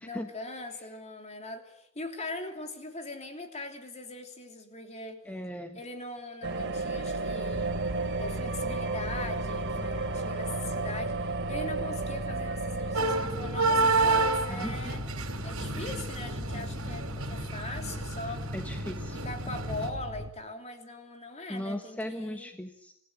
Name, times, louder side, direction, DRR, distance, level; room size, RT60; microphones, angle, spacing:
voice 1, 0.0-5.2 5.7-7.7 8.2-18.5 19.1-22.5, left 2 dB, 30° left, 5 dB, 3.2 m, -41 dB
voice 2, 5.3-5.8 14.5-14.7 18.5-19.2 21.5-22.9, equal, 5° left, 5 dB, 1.4 m, -37 dB
sound 1, 6.4-13.0, right 3 dB, 55° right, 2.9 m, -33 dB
Mechanical fan, 7.5-20.3, left 1 dB, 10° right, 1.4 m, -39 dB
sound 2, 12.9-19.9, right 3 dB, 85° right, 3.4 m, -30 dB
27.0 x 16.5 x 9.4 m, 0.75 s
head